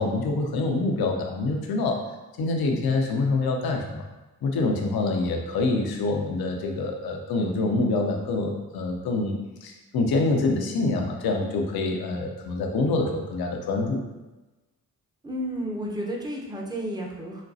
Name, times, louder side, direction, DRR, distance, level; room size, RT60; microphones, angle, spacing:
voice 1, 0.0-2.0 2.4-4.1 4.4-9.3 9.6-14.0, left 3 dB, 70° left, 2 dB, 0.7 m, -26 dB
voice 2, 15.2-17.4, equal, 10° right, -2 dB, 0.8 m, -32 dB
5.1 x 2.2 x 2.6 m, 1.1 s
supercardioid pair, 45°, 38 cm